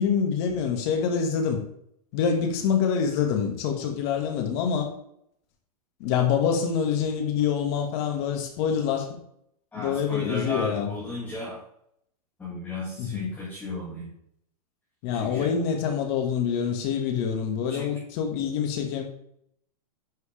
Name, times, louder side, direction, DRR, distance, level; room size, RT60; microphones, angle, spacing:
voice 1, 0.0-1.6 2.1-4.9 6.0-9.1 9.7-10.9 13.0-13.3 15.0-19.0, left 7 dB, 40° left, 4 dB, 2.0 m, -26 dB
voice 2, 9.7-11.6 12.4-14.1 15.1-15.5 17.7-17.9, left 2 dB, 10° left, -7 dB, 2.4 m, -34 dB
11.0 x 6.3 x 3.5 m, 0.71 s
supercardioid pair, 160°, 20 cm